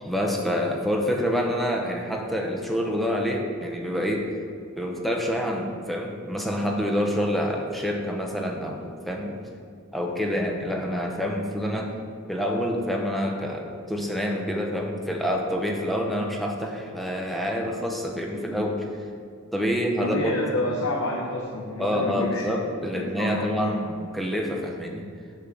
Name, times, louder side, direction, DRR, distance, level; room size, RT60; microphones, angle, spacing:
voice 1, 0.0-4.4 4.7-9.5 9.9-11.9 12.3-18.9 19.5-20.7 21.8-25.0, equal, ahead, 0 dB, 0.6 m, -27 dB
voice 2, 20.0-22.5 22.9-23.8, left 2 dB, 70° left, -2 dB, 0.7 m, -29 dB
6.6 x 3.8 x 5.9 m, 2.3 s
head